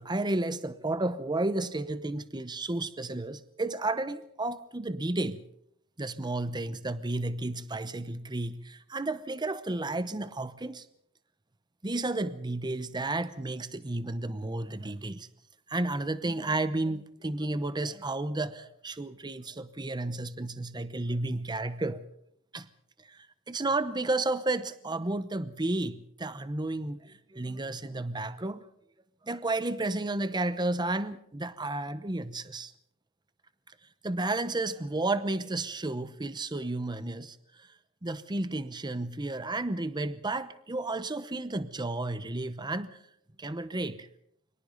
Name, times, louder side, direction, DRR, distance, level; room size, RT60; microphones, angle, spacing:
voice 1, 0.0-5.4 6.0-10.9 11.8-15.3 15.7-22.0 22.5-22.7 23.1-28.7 29.2-32.7 34.0-37.7 38.0-43.0 43.4-44.1, right 2 dB, 20° right, 0.9 m, -32 dB
29.0 x 24.0 x 4.0 m
head